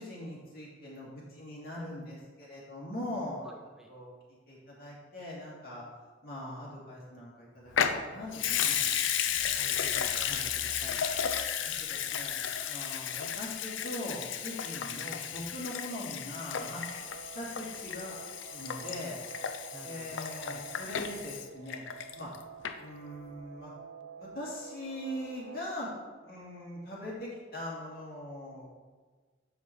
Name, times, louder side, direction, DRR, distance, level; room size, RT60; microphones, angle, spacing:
voice 1, 0.0-3.4 3.9-4.1 4.5-5.8 6.2-8.8 10.2-10.4 11.8-12.4 12.7-16.8 17.3-18.2 18.5-19.2 19.8-21.8 22.1-22.3 22.8-23.7 24.2-25.9 26.2-28.7, left 1 dB, 55° left, -6 dB, 2.5 m, -41 dB
voice 2, 3.4-3.9 9.2-11.0 19.7-20.6, equal, 5° right, 2 dB, 0.4 m, -52 dB
Water tap faucet / Sink (filling or washing) / Liquid, 7.7-22.4 22.6-22.7, left 8 dB, 85° left, 0.5 m, -33 dB
Guitar, 16.3-25.8, right 7 dB, 70° right, 0.3 m, -49 dB
7.0 x 5.8 x 4.5 m, 1.4 s
head